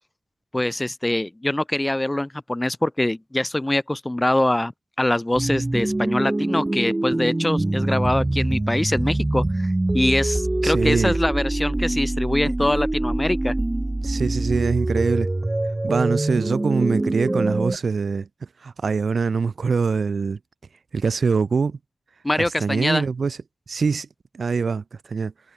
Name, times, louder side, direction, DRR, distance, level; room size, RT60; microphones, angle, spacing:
voice 1, 0.5-4.7 5.0-13.5 22.2-23.0, left 1 dB, 20° left, 1.9 m, -23 dB
sound 1, 5.3-17.8, right 2 dB, 25° right, 0.9 m, -24 dB
voice 2, 10.6-11.2 14.0-15.3 15.8-18.3 18.6-20.4 20.9-21.8 22.4-23.4 23.7-24.1 24.3-25.3, right 5 dB, 80° right, 0.7 m, -23 dB
wide cardioid pair, 70°, 0 cm